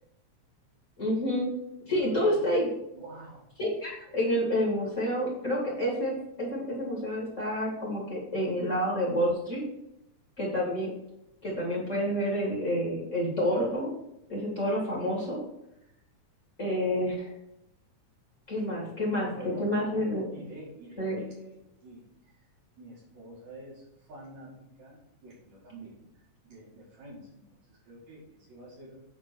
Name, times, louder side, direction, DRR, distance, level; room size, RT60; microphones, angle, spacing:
voice 1, 1.0-1.5 1.9-2.6 3.6-9.6 10.4-10.9 11.4-13.9 14.3-15.4 16.6-17.3 18.5-20.2 21.0-21.2, equal, 25° left, -4 dB, 2.2 m, -29 dB
voice 2, 1.9-2.5 2.9-3.5 18.5-18.9 19.3-22.4 22.8-29.0, right 1 dB, 70° right, -10 dB, 3.6 m, -47 dB
8.3 x 3.9 x 6.1 m, 0.83 s
omnidirectional pair, 3.4 m